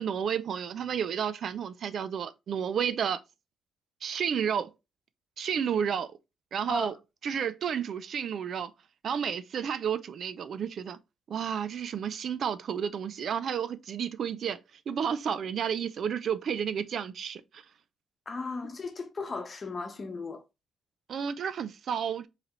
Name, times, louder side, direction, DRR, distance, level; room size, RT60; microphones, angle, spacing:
voice 1, 0.0-3.2 4.0-4.7 5.4-6.1 6.5-6.9 7.2-8.7 9.0-11.0 11.3-14.6 14.9-17.6 21.1-22.3, right 7 dB, 60° right, 0.5 m, -31 dB
voice 2, 18.3-20.4, left 4 dB, 35° left, 0.9 m, -36 dB
4.7 x 3.2 x 3.1 m
cardioid pair, 90°, 0 cm